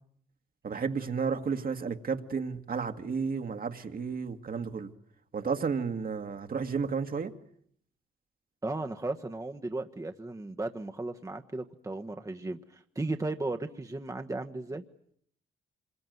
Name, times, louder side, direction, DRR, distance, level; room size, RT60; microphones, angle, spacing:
voice 1, 0.6-4.9 5.3-7.3, right 5 dB, 45° right, 2.0 m, -32 dB
voice 2, 8.6-12.6 12.9-14.8, right 2 dB, 15° right, 1.3 m, -35 dB
26.5 x 22.5 x 9.4 m
cardioid pair, 80°, 20 cm